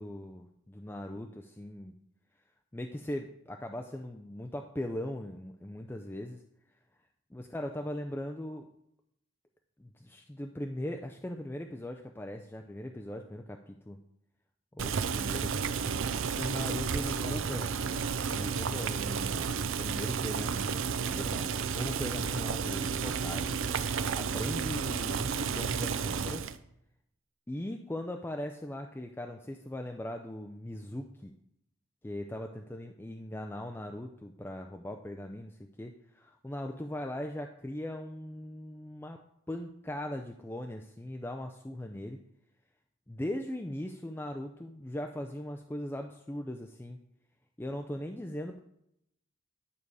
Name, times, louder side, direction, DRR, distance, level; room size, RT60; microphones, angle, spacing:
voice 1, 0.0-1.9 2.7-6.4 7.3-8.7 9.8-14.0 14.7-16.0 16.3-17.8 18.3-20.7 21.0-23.6 23.9-26.5 27.5-31.3 32.0-39.2 39.5-42.2 43.1-47.0 47.6-48.6, left 1 dB, 10° left, 3 dB, 0.4 m, -39 dB
Boiling, 14.8-26.6, right 6 dB, 75° right, 0.5 m, -32 dB
11.0 x 6.8 x 4.8 m, 0.78 s
head